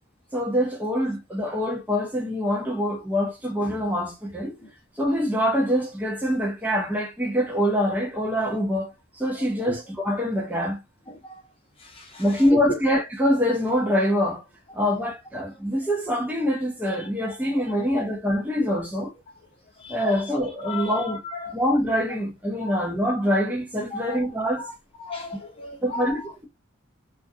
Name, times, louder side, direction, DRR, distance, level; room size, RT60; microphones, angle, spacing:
voice 1, 0.3-4.6 5.0-10.8 12.2-14.4 14.7-19.1 19.9-21.2 21.5-24.7 25.8-26.5, equal, 10° right, 0.5 m, -25 dB
voice 2, 11.1-11.4 12.0-12.2 12.5-12.6 16.9-17.0 17.7-18.0 19.8-20.2 20.6-21.5 22.6-22.9 23.9-24.3 24.6-24.7 25.0-26.1, left 3 dB, 25° left, 0.7 m, -35 dB
2.3 x 2.1 x 2.6 m
head